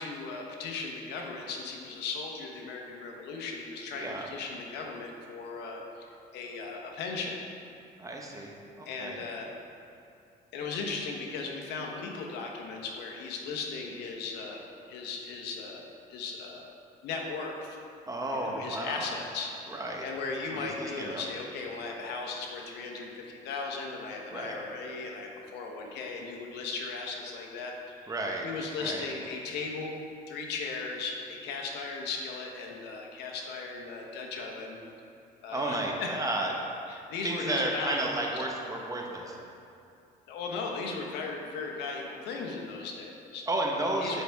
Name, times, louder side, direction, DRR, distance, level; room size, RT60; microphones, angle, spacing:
voice 1, 0.0-7.4 8.9-9.5 10.5-15.8 16.1-16.7 17.0-17.8 18.3-28.1 28.4-30.0 30.3-34.8 35.4-36.1 36.9-38.1 38.3-38.4 40.3-43.5 44.0-44.2, left 4 dB, 85° left, 1 dB, 1.0 m, -37 dB
voice 2, 4.0-4.3 8.0-9.2 18.1-19.1 19.7-20.1 20.5-21.2 24.3-24.6 28.1-28.5 28.8-29.0 35.5-36.5 37.2-39.4 43.5-44.2, right 2 dB, 20° right, 0 dB, 1.0 m, -32 dB
8.3 x 5.8 x 3.5 m, 2.6 s
cardioid pair, 110°, 17 cm